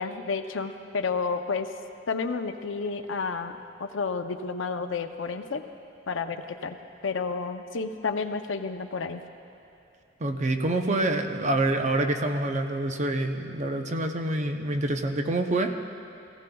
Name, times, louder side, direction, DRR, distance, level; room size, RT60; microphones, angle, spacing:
voice 1, 0.0-1.7 2.1-5.6 6.1-6.8 7.0-9.2, left 4 dB, 75° left, 7 dB, 0.6 m, -31 dB
voice 2, 10.2-15.8, right 2 dB, 40° right, 5 dB, 0.7 m, -26 dB
18.0 x 16.0 x 2.3 m, 2.6 s
head